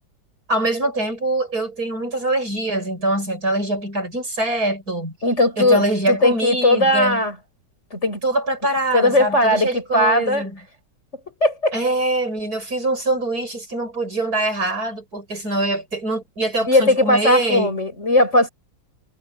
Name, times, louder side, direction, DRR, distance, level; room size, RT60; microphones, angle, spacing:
voice 1, 0.5-5.1 5.6-7.2 8.2-10.5 11.7-17.8, right 2 dB, 55° right, 8.1 m, -23 dB
voice 2, 5.2-7.4 7.9-8.2 8.9-10.5 11.4-11.7 16.6-18.5, left 1 dB, 40° left, 8.1 m, -18 dB
omnidirectional pair, 1.9 m